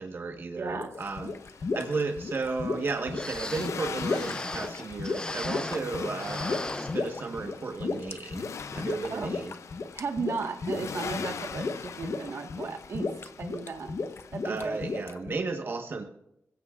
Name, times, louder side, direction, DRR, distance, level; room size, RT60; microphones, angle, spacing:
voice 1, 0.0-1.3 1.7-8.4 8.7-9.5 14.4-16.0, right 3 dB, 50° right, 3 dB, 1.3 m, -34 dB
voice 2, 0.6-0.9 9.1-9.4 9.9-13.1 13.4-14.0 14.3-14.9 15.2-15.3, right 4 dB, 70° right, 4 dB, 1.5 m, -35 dB
sound 1, 0.7-15.3, left 4 dB, 55° left, 0.9 m, -34 dB
Accelerating revving vroom, 1.0-15.0, left 6 dB, 80° left, 0.5 m, -43 dB
sound 2, 2.8-2.9 3.1-5.9 6.2-7.6 8.0-8.1 8.7-9.0 9.4-9.5, left 2 dB, 15° left, 0.4 m, -37 dB
27.5 x 16.5 x 2.5 m, 0.82 s
wide cardioid pair, 135°, 5 cm